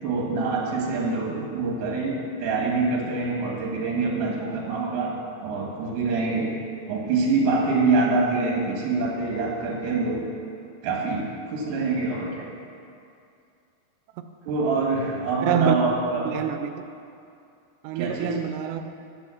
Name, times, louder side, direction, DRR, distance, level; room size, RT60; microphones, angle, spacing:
voice 1, 0.0-5.1 5.4-6.5 6.9-10.2 10.8-12.4 14.4-16.3 18.0-18.4, right 3 dB, 60° right, 2.8 m, -25 dB
voice 2, 15.4-15.8 16.3-16.8 17.8-18.9, right 9 dB, 85° right, 2.8 m, -26 dB
10.5 x 7.9 x 7.0 m
omnidirectional pair, 5.0 m